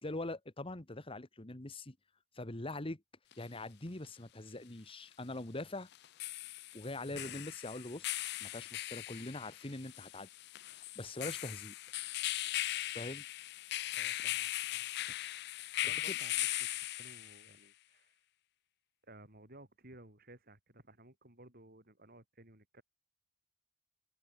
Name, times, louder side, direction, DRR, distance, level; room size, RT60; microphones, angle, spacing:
voice 1, 0.0-2.0 2.3-3.0 3.4-5.9 6.7-10.3 10.9-11.7 12.9-13.2 16.1-16.2, left 2 dB, 30° left, 1.5 m, -43 dB
sound 1, 3.3-3.4 5.9-17.5, left 15 dB, 60° left, 0.5 m, -39 dB
voice 2, 7.0-7.4 13.9-15.2 15.8-18.1 19.1-22.8, right 1 dB, 50° right, 7.7 m, -57 dB
head